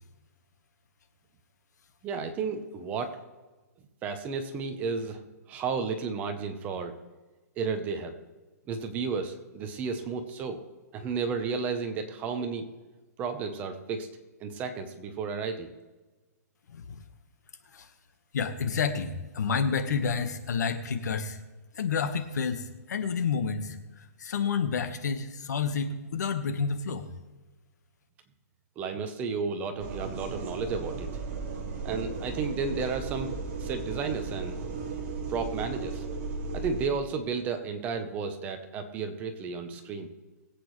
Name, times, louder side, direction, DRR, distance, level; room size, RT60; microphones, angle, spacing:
voice 1, 2.0-3.2 4.0-5.2 5.5-7.0 7.6-8.1 8.7-10.6 10.9-12.7 13.2-14.1 14.4-15.7 28.8-31.1 31.8-33.3 33.6-34.6 35.3-36.0 36.5-40.1, right 5 dB, 15° right, 7 dB, 0.9 m, -32 dB
voice 2, 16.7-17.0 17.7-17.9 18.3-21.4 21.8-27.0, left 6 dB, 75° left, 9 dB, 1.5 m, -30 dB
sound 1, 29.8-36.9, right 4 dB, 35° right, 2.3 m, -35 dB
21.5 x 8.4 x 3.2 m, 1.2 s
hypercardioid pair, 165°, 9 cm